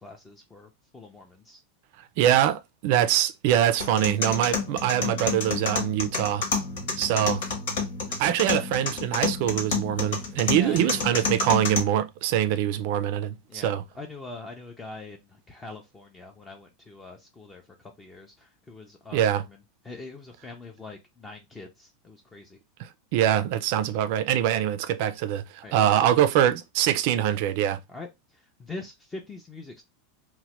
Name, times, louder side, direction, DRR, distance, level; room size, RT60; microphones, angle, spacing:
voice 1, 0.0-1.6 10.5-11.1 13.5-19.6 19.8-22.6 25.6-26.4 27.9-29.8, left 3 dB, 15° left, 0.4 m, -43 dB
voice 2, 2.2-6.5 7.0-7.4 8.2-13.8 19.1-19.4 22.8-27.8, right 11 dB, 55° right, 0.4 m, -24 dB
sound 1, 3.8-11.8, left 5 dB, 80° left, 1.1 m, -30 dB
3.0 x 2.1 x 2.9 m
supercardioid pair, 155°, 0 cm